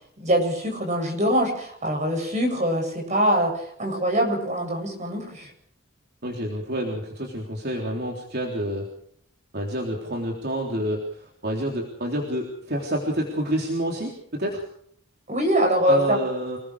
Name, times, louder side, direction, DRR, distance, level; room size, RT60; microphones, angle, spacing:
voice 1, 0.2-5.5 15.3-16.2, equal, 35° right, 2 dB, 8.0 m, -23 dB
voice 2, 6.2-8.9 9.5-14.6 15.9-16.6, right 1 dB, 50° right, -1 dB, 3.6 m, -28 dB
28.0 x 20.5 x 5.0 m, 0.65 s
head